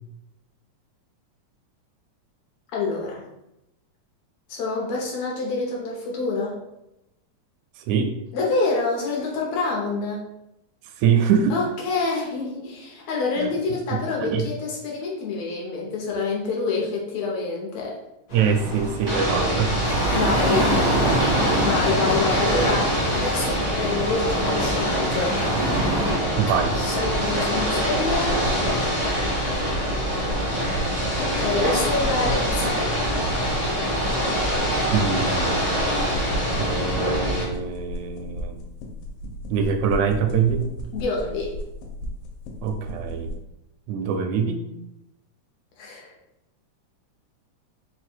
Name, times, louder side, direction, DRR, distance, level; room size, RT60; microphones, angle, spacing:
voice 1, 2.7-3.2 4.5-6.6 8.3-10.2 11.5-18.0 20.1-20.7 21.6-25.4 26.7-28.4 31.2-32.8 40.9-41.5 45.8-46.1, left 3 dB, 70° left, -2 dB, 1.9 m, -27 dB
voice 2, 7.8-8.1 11.0-11.6 13.4-13.5 13.9-14.4 18.3-19.8 26.4-26.8 34.9-35.7 36.5-38.6 39.5-40.7 42.6-43.3 43.9-44.6, right 6 dB, 80° right, 5 dB, 1.8 m, -24 dB
sound 1, 18.3-26.2, right 1 dB, 50° left, 0.9 m, -26 dB
Ocean / Boat Water vehicle, 19.1-37.4, equal, 30° left, 0.4 m, -24 dB
sound 2, 28.0-43.4, left 1 dB, 90° left, 2.2 m, -35 dB
4.8 x 2.2 x 4.4 m, 0.88 s
omnidirectional pair, 3.3 m